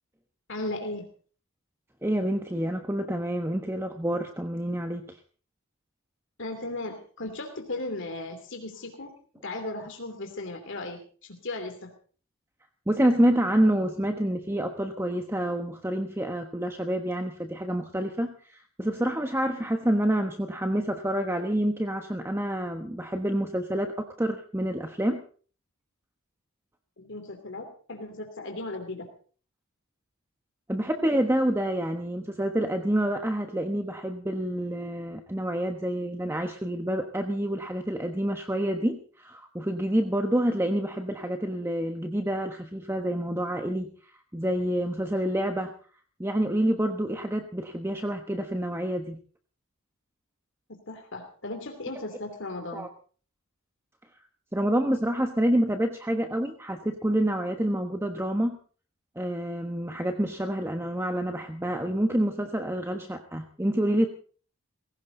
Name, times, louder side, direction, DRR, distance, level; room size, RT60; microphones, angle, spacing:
voice 1, 0.5-1.0 6.4-9.1 9.4-11.9 27.0-29.1 50.9-52.9, left 2 dB, 55° left, 4 dB, 2.8 m, -36 dB
voice 2, 2.0-5.2 12.9-25.2 30.7-43.9 44.3-45.7 46.2-49.2 52.7-52.9 54.5-58.6 59.2-64.1, right 1 dB, 10° right, 5 dB, 1.2 m, -28 dB
20.0 x 17.0 x 3.9 m, 0.42 s
head